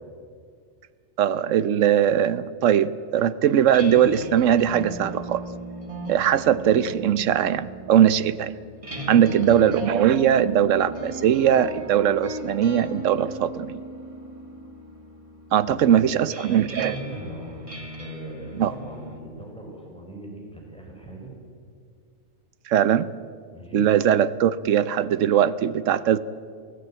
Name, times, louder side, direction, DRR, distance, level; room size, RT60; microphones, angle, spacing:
voice 1, 1.2-5.4 6.1-8.5 9.1-13.8 15.5-17.0 18.6-18.7 22.7-23.1 23.7-26.2, right 9 dB, 70° right, 15 dB, 1.1 m, -20 dB
sound 1, 3.5-19.2, right 1 dB, 25° right, 2.1 m, -36 dB
voice 2, 15.6-16.1 16.8-17.6 17.9-21.3 23.5-23.8, right 1 dB, 5° left, -1 dB, 5.0 m, -41 dB
24.0 x 16.0 x 8.7 m, 2.1 s
omnidirectional pair, 1.4 m